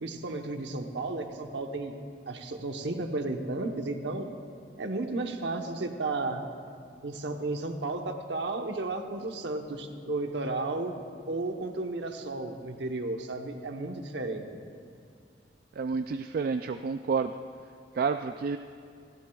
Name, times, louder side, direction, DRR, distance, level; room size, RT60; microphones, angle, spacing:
voice 1, 0.0-1.9 2.3-4.3 4.8-6.5 7.0-14.6, right 2 dB, 70° right, 4 dB, 1.0 m, -33 dB
voice 2, 15.8-17.3 17.9-18.6, right 5 dB, 55° right, 8 dB, 0.3 m, -29 dB
28.0 x 11.0 x 2.3 m, 2.4 s
head